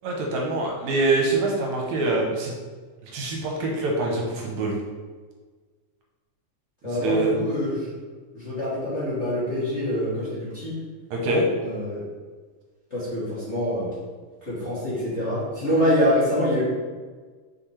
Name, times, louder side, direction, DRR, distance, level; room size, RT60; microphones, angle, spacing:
voice 1, 0.0-2.5 3.0-4.8 6.8-7.3 11.1-11.5, right 2 dB, 75° right, -1 dB, 2.3 m, -25 dB
voice 2, 6.8-7.9 8.3-10.8 11.6-12.1 12.9-13.9 14.4-16.6, equal, 30° left, -10 dB, 1.5 m, -25 dB
6.3 x 5.2 x 3.3 m, 1.4 s
omnidirectional pair, 3.4 m